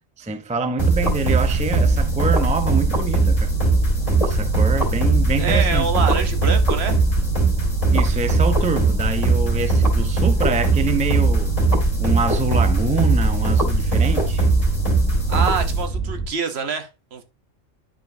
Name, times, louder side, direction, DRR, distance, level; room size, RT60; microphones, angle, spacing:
voice 1, 0.2-3.5 4.2-5.9 7.9-11.6 12.0-14.5, right 3 dB, 10° right, 0.5 m, -25 dB
sound 1, 0.8-16.2, right 3 dB, 30° left, 2.1 m, -19 dB
voice 2, 5.4-7.0 15.3-17.2, right 5 dB, 60° right, 1.1 m, -26 dB
10.5 x 4.7 x 2.6 m
omnidirectional pair, 1.3 m